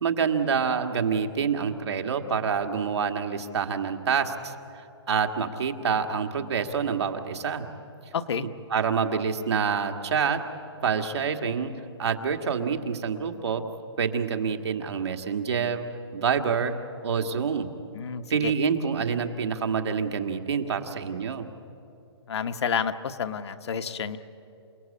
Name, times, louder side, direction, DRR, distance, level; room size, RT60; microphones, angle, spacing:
voice 1, 0.0-7.7 8.7-10.4 10.8-11.7 12.0-13.6 14.0-15.8 16.1-16.7 17.0-17.7 18.3-21.5, right 6 dB, 70° right, 4 dB, 1.9 m, -27 dB
voice 2, 8.1-8.5 17.9-18.5 22.3-24.2, left 7 dB, 70° left, 8 dB, 1.2 m, -29 dB
28.5 x 17.5 x 8.5 m, 2.7 s
hypercardioid pair, 170°, 14 cm